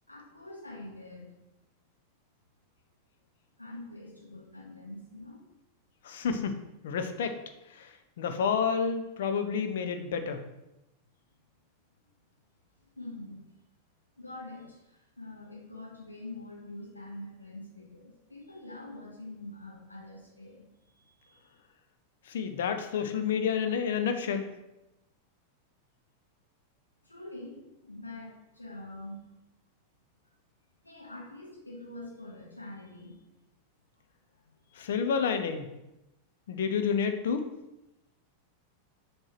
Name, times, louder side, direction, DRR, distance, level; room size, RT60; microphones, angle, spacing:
voice 1, 0.1-1.3 3.6-5.4 12.8-13.5 14.2-20.7 20.9-21.5 27.0-29.2 30.8-33.2 34.7-34.9, left 2 dB, 85° left, -3 dB, 1.9 m, -45 dB
voice 2, 6.0-6.5 6.8-7.4 7.8-7.9 8.2-10.4 22.3-24.5 34.8-35.7 36.5-37.5, left 6 dB, 60° left, 7 dB, 0.8 m, -29 dB
6.3 x 4.6 x 5.9 m, 0.92 s
figure-of-eight pair, 90°, 0 cm